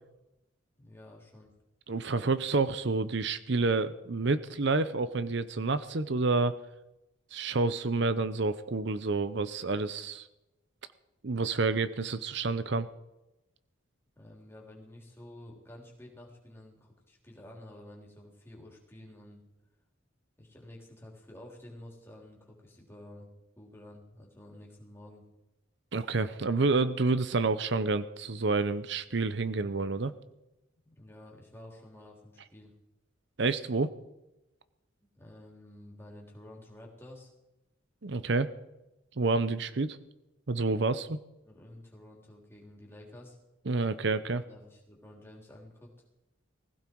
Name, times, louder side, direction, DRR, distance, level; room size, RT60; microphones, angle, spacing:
voice 1, 0.8-1.5 14.1-19.4 20.4-23.3 23.6-25.2 30.8-32.7 35.1-37.3 41.4-43.4 44.5-45.9, left 1 dB, 10° left, -2 dB, 3.5 m, -51 dB
voice 2, 1.9-6.6 7.3-10.3 11.2-12.9 25.9-30.1 33.4-33.9 38.0-38.5 39.2-40.0 40.5-41.2 43.7-44.4, right 3 dB, 60° right, 13 dB, 0.7 m, -29 dB
20.0 x 15.5 x 4.6 m, 0.96 s
head